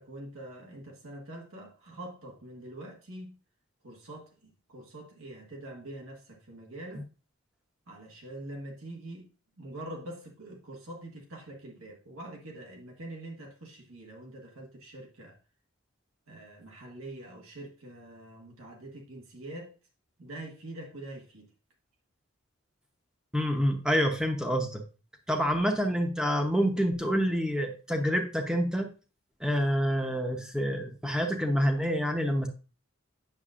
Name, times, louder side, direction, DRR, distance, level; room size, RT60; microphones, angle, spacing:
voice 1, 0.0-3.4 3.8-7.0 7.9-9.3 9.6-15.4 16.3-19.7 20.2-21.5, right 1 dB, 90° right, 1.6 m, -44 dB
voice 2, 23.3-24.8 25.3-28.9 29.4-32.5, equal, 5° right, 0.8 m, -27 dB
8.4 x 6.5 x 2.5 m
head